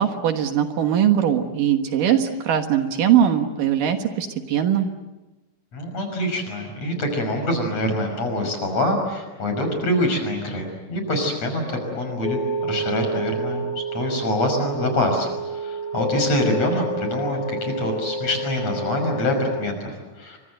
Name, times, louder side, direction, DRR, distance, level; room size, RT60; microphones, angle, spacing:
voice 1, 0.0-4.9, right 9 dB, 65° right, 6 dB, 2.9 m, -20 dB
voice 2, 5.7-12.4 12.6-20.4, left 1 dB, 45° left, 4 dB, 7.0 m, -25 dB
sound 1, 11.7-19.6, right 1 dB, 65° left, 5.1 m, -29 dB
30.0 x 25.0 x 7.9 m, 1.1 s
omnidirectional pair, 4.3 m